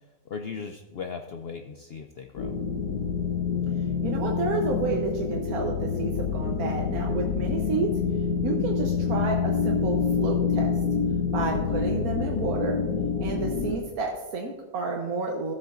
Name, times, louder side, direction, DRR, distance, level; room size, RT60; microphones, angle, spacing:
voice 1, 0.3-2.5, left 5 dB, 65° left, 5 dB, 0.6 m, -37 dB
sound 1, 2.4-13.7, left 6 dB, 85° left, 1.2 m, -27 dB
voice 2, 4.0-7.9 8.4-10.8 11.3-12.8 13.2-15.5, right 4 dB, 80° right, 1 dB, 1.4 m, -30 dB
15.0 x 7.8 x 2.5 m, 1.2 s
omnidirectional pair, 1.6 m